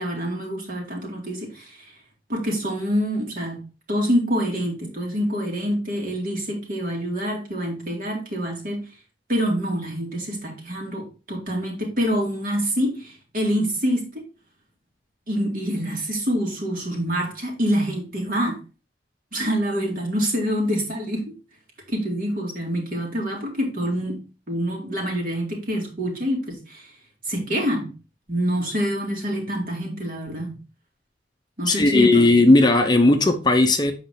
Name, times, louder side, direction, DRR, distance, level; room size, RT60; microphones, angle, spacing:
voice 1, 0.0-1.9 2.3-3.6 3.9-8.8 9.3-14.2 15.3-18.6 19.3-21.3 21.9-26.9 27.3-27.9 28.3-30.5 31.6-32.3, equal, 50° right, 0 dB, 2.3 m, -26 dB
voice 2, 31.7-33.9, left 2 dB, 25° left, 5 dB, 0.7 m, -16 dB
7.8 x 5.0 x 3.6 m, 0.32 s
head